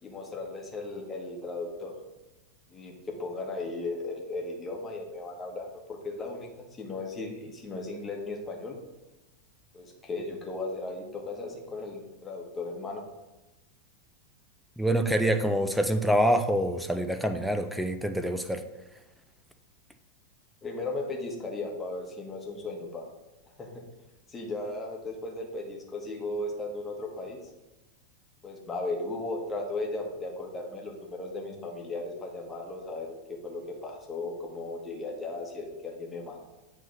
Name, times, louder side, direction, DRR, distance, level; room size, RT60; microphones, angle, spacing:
voice 1, 0.0-1.9 2.7-8.8 9.7-13.1 20.6-23.0 23.6-23.8 24.3-27.4 28.4-36.5, left 2 dB, 15° left, 0 dB, 1.4 m, -36 dB
voice 2, 14.8-18.6, equal, ahead, 7 dB, 0.5 m, -26 dB
7.3 x 3.3 x 5.6 m, 1.0 s
figure-of-eight pair, 90°, 0 cm